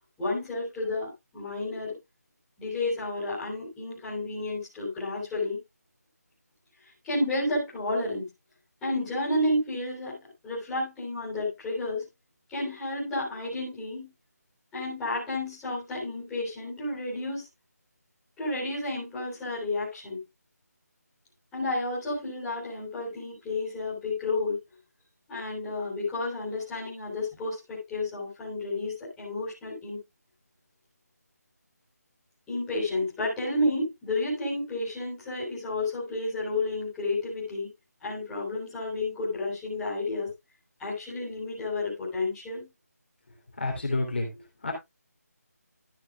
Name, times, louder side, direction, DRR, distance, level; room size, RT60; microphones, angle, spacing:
voice 1, 0.2-2.0 2.6-5.6 7.0-8.3 8.8-10.2 10.4-12.0 12.5-14.1 14.7-17.4 18.4-20.2 21.5-24.6 25.3-30.0 32.5-37.7 38.0-40.3 40.8-42.7, left 2 dB, 5° left, -11 dB, 3.6 m, -31 dB
voice 2, 43.6-44.7, left 2 dB, 40° left, 1 dB, 3.2 m, -30 dB
13.0 x 8.2 x 2.4 m, 0.20 s
figure-of-eight pair, 175°, 9 cm